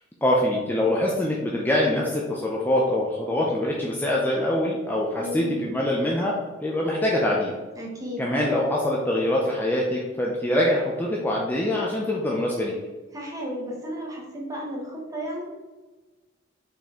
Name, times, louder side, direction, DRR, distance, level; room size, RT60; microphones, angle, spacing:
voice 1, 0.2-6.3 6.6-7.5 8.2-12.7, left 1 dB, 10° left, -3 dB, 0.6 m, -24 dB
voice 2, 5.2-5.6 7.7-8.2 13.1-15.4, equal, 20° right, -3 dB, 1.3 m, -33 dB
5.8 x 4.4 x 3.7 m, 1.3 s
head